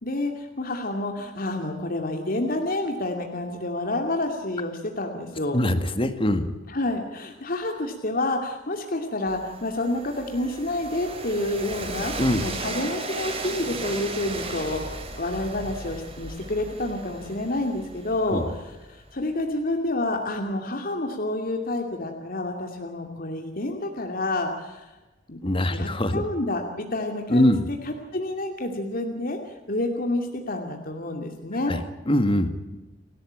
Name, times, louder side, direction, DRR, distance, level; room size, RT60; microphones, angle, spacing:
voice 1, 0.0-5.6 6.7-12.1 12.4-18.6 18.9-24.8 25.3-29.4 29.7-31.7, left 2 dB, 50° left, 3 dB, 2.6 m, -29 dB
voice 2, 5.5-6.5 12.2-12.4 18.3-18.5 25.4-26.2 27.3-27.7 31.7-31.8 32.1-32.5, left 1 dB, 30° left, 10 dB, 2.0 m, -22 dB
Train, 9.3-19.1, right 2 dB, 30° right, 3.8 m, -36 dB
29.5 x 13.0 x 8.8 m, 1.1 s
head